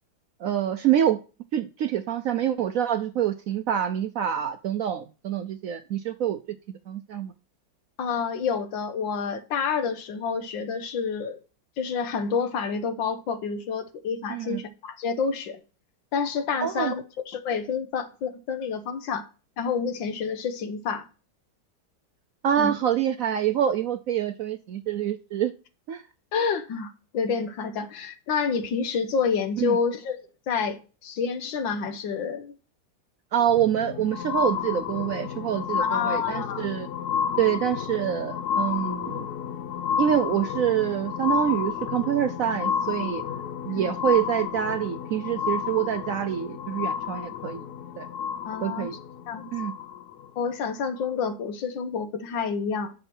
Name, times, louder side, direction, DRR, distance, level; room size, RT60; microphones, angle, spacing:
voice 1, 0.4-1.2 1.5-6.4 6.9-7.3 14.3-14.6 16.6-16.9 22.4-25.5 25.9-26.0 29.6-29.8 33.3-36.9 37.4-39.3 40.0-43.2 43.6-47.6 48.0-48.1 48.6-48.9 49.5-49.7, right 10 dB, 75° right, 0.7 m, -26 dB
voice 2, 8.0-11.4 11.8-15.6 16.1-19.3 19.6-21.1 22.6-22.7 26.3-30.2 30.5-32.5 35.8-36.7 43.7-43.9 48.5-48.9 49.3-49.5 50.4-52.9, left 6 dB, 85° left, 1.8 m, -28 dB
sound 1, 33.4-50.3 51.0-51.1, left 8 dB, 65° left, 1.1 m, -31 dB
9.8 x 6.7 x 4.5 m
omnidirectional pair, 2.0 m